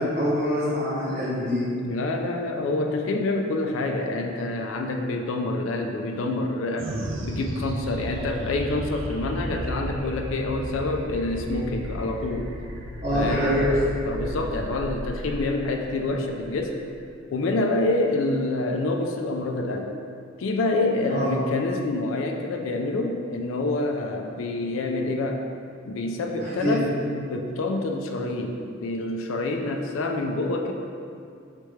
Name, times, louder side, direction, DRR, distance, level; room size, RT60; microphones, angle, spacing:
voice 1, 0.0-1.6 13.0-13.8 21.1-21.3 26.4-26.8, equal, 40° right, -14 dB, 1.2 m, -25 dB
voice 2, 1.8-6.9 7.2-12.5 13.1-13.5 14.1-16.8 17.3-19.9 20.4-25.4 25.9-26.9 27.3-30.7, left 2 dB, 90° left, 3 dB, 0.3 m, -27 dB
sound 1, 6.8-17.4, right 1 dB, 75° right, 0.5 m, -34 dB
4.5 x 3.3 x 3.1 m, 2.4 s
head